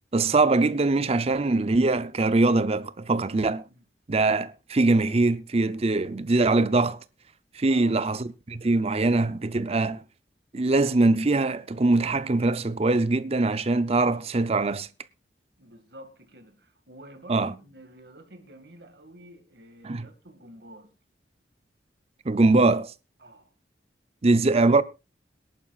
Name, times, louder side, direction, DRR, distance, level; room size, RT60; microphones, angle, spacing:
voice 1, 0.1-3.6 4.1-7.0 7.6-10.0 10.5-14.9 17.3-17.5 19.8-20.1 22.3-22.9 24.2-24.8, right 3 dB, 35° right, 0.6 m, -22 dB
voice 2, 7.6-8.0 15.6-20.9 23.2-23.5, right 1 dB, 65° right, 2.1 m, -48 dB
22.0 x 11.0 x 2.4 m
head